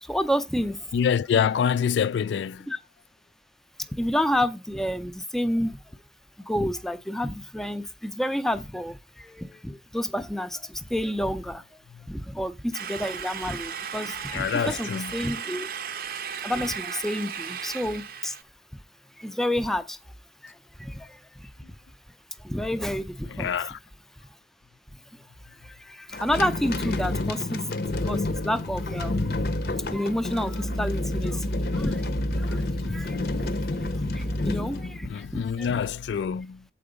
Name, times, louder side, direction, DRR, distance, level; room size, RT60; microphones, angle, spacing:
voice 1, 0.0-0.9 2.7-2.8 3.9-5.8 6.5-11.8 12.1-15.7 16.4-18.4 19.2-20.0 20.4-21.5 22.4-23.5 25.6-29.3 29.8-32.0 32.3-35.8, equal, ahead, 0.5 m, -30 dB
voice 2, 0.9-2.7 11.9-12.1 14.3-15.1 23.3-23.8 35.0-36.6, left 7 dB, 90° left, 0.3 m, -26 dB
sound 1, 12.7-18.4, right 7 dB, 55° right, 0.5 m, -36 dB
sound 2, 26.1-35.6, left 2 dB, 60° left, 0.7 m, -29 dB
7.8 x 4.7 x 5.0 m
head